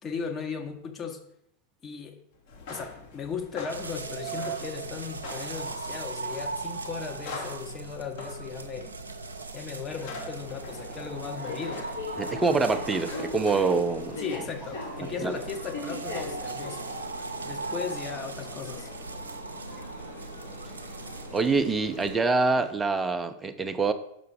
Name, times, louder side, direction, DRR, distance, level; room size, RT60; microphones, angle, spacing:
voice 1, 0.0-1.2 1.8-2.2 2.7-9.0 9.5-11.9 14.2-16.9 17.2-18.9, left 6 dB, 25° left, 0.9 m, -37 dB
sound 1, 2.4-14.3, left 3 dB, 55° left, 1.5 m, -45 dB
sound 2, 3.7-22.2, right 4 dB, 75° right, 0.6 m, -38 dB
sound 3, 10.4-22.7, left 2 dB, 75° left, 3.1 m, -41 dB
voice 2, 12.2-14.2 15.0-15.4 21.3-23.9, right 4 dB, 15° right, 0.5 m, -25 dB
5.9 x 5.4 x 5.2 m
figure-of-eight pair, 90°, 0 cm